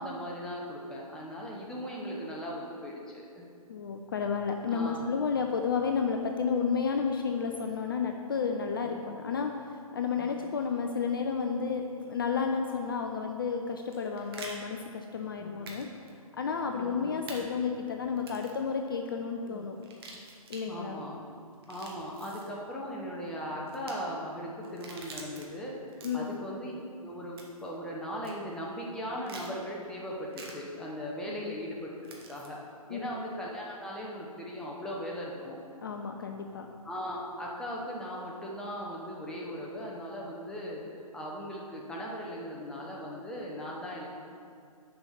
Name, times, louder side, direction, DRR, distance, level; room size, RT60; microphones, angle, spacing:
voice 1, 0.0-3.5 4.7-5.0 8.8-9.0 10.2-10.3 15.4-15.6 16.7-17.1 19.4-19.7 20.7-21.2 21.7-26.7 27.0-31.9 32.3-32.6 32.9-35.6 36.8-44.1, equal, 5° left, -4 dB, 0.7 m, -38 dB
voice 2, 3.7-15.9 16.3-19.8 20.5-21.0 26.0-26.3 31.3-31.5 32.9-33.2 35.8-36.7, left 5 dB, 35° left, 4 dB, 0.4 m, -32 dB
sound 1, 13.8-14.5 15.7-15.8 16.1-16.2 17.3-17.4 18.2-18.6 19.8-20.6 21.5-22.5 23.7-23.9 24.6-25.4 25.9-26.4 27.4-27.7 28.2-28.3 29.3-29.5 30.3-30.5 32.0-32.5, right 3 dB, 40° right, 1.2 m, -46 dB
6.8 x 5.3 x 5.9 m, 2.4 s
figure-of-eight pair, 130°, 19 cm